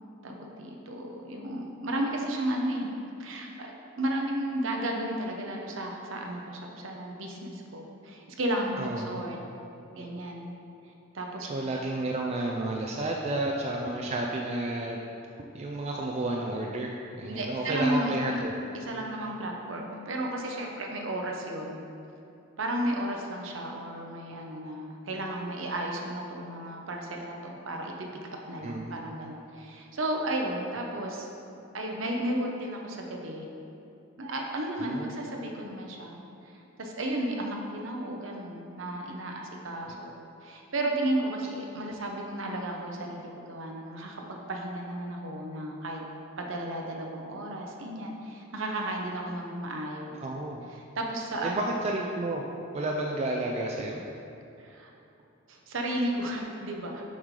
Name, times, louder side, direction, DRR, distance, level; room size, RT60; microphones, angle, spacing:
voice 1, 0.2-2.9 3.2-9.4 9.9-10.5 11.1-11.5 17.2-18.4 18.7-21.8 22.6-28.1 28.5-31.3 31.7-33.5 34.2-36.2 36.8-40.2 40.4-46.0 46.4-50.2 50.7-51.6 54.6-54.9 55.5-57.0, right 1 dB, 65° right, 1 dB, 0.8 m, -33 dB
voice 2, 8.8-9.2 11.4-15.0 15.5-18.5 28.6-28.9 34.8-35.2 50.2-50.6 51.4-52.4 52.7-54.0, right 2 dB, 30° right, 0 dB, 0.3 m, -31 dB
7.1 x 5.2 x 3.2 m, 2.8 s
head